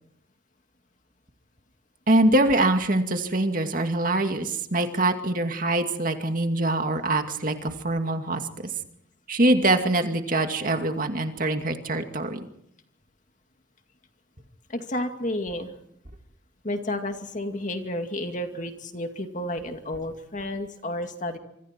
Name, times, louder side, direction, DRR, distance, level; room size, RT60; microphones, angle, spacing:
voice 1, 2.1-8.4 9.3-12.5, right 2 dB, 45° right, 5 dB, 2.3 m, -24 dB
voice 2, 14.7-15.7 16.6-21.4, left 1 dB, 40° left, 5 dB, 2.3 m, -31 dB
26.5 x 25.0 x 4.5 m, 0.75 s
head